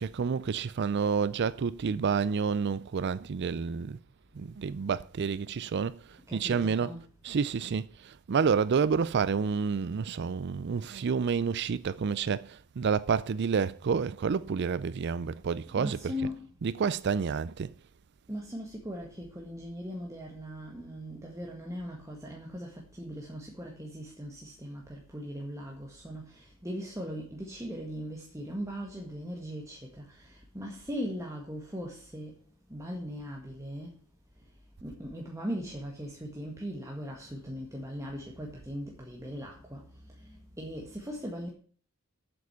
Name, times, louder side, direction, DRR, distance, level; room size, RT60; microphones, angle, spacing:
voice 1, 0.0-4.0 4.4-6.0 6.3-6.9 7.2-16.2 16.6-17.7, right 6 dB, 50° right, 0.4 m, -29 dB
voice 2, 6.3-7.0 15.8-16.5 18.3-32.4 32.7-34.0 34.8-39.9 40.2-41.5, equal, 15° right, 1.8 m, -39 dB
8.0 x 7.5 x 8.1 m
head